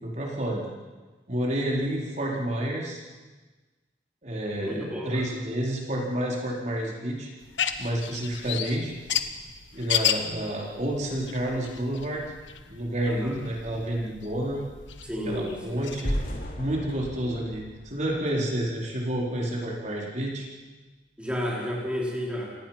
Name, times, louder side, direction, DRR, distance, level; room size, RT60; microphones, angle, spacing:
voice 1, 0.0-0.7 1.3-3.0 4.2-7.3 7.8-8.9 9.7-12.2 12.7-14.6 15.2-16.2 16.6-20.5, right 1 dB, 40° right, -2 dB, 4.2 m, -29 dB
voice 2, 4.6-5.3 13.0-13.4 15.0-15.8 21.2-22.6, equal, 5° right, -4 dB, 4.3 m, -32 dB
sound 1, 7.4-16.4, left 9 dB, 80° left, 1.3 m, -34 dB
sound 2, 16.0-19.0, equal, 45° left, 3.2 m, -34 dB
28.0 x 18.5 x 5.9 m, 1.3 s
head